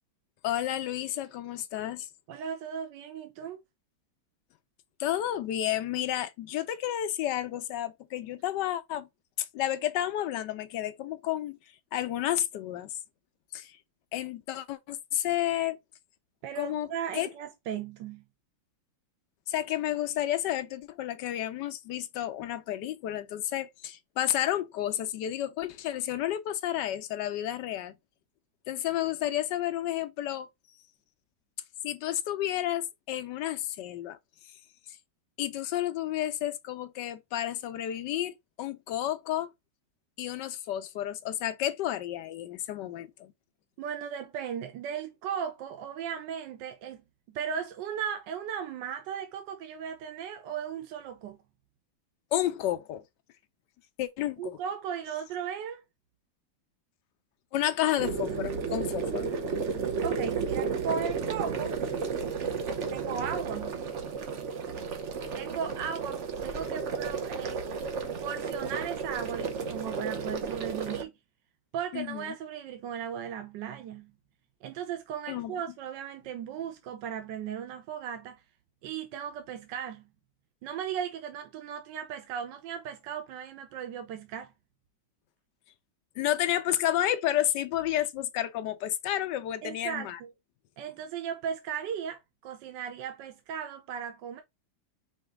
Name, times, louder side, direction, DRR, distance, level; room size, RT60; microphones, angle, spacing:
voice 1, 0.4-2.1 5.0-9.1 9.4-11.6 11.9-13.0 13.5-13.8 14.1-15.8 16.6-16.9 17.1-17.3 19.5-27.9 28.7-30.5 31.8-34.2 35.4-39.5 40.2-43.3 52.3-53.0 54.0-54.6 57.5-59.3 71.9-72.3 75.3-75.5 86.2-90.2, left 12 dB, 70° left, 1.1 m, -31 dB
voice 2, 2.3-3.6 16.4-18.2 43.8-47.0 47.3-51.4 54.4-55.8 60.0-61.7 62.9-63.8 65.3-67.6 68.2-71.1 71.7-74.1 74.6-78.4 78.8-80.0 80.6-84.5 89.6-90.3 90.8-94.4, right 8 dB, 70° right, 1.3 m, -36 dB
sound 1, 58.0-71.0, right 5 dB, 55° right, 0.9 m, -33 dB
5.1 x 2.9 x 3.5 m
omnidirectional pair, 2.1 m